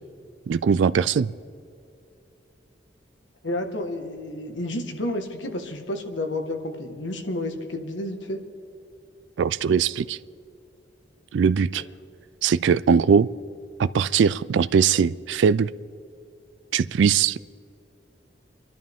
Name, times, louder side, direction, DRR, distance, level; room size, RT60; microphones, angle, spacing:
voice 1, 0.5-1.3 9.4-10.2 11.3-11.8 12.4-13.3 13.8-15.7 16.7-17.4, right 6 dB, 75° right, 16 dB, 0.3 m, -20 dB
voice 2, 3.4-8.4, left 1 dB, 80° left, 5 dB, 1.6 m, -30 dB
29.5 x 11.5 x 3.6 m, 2.6 s
head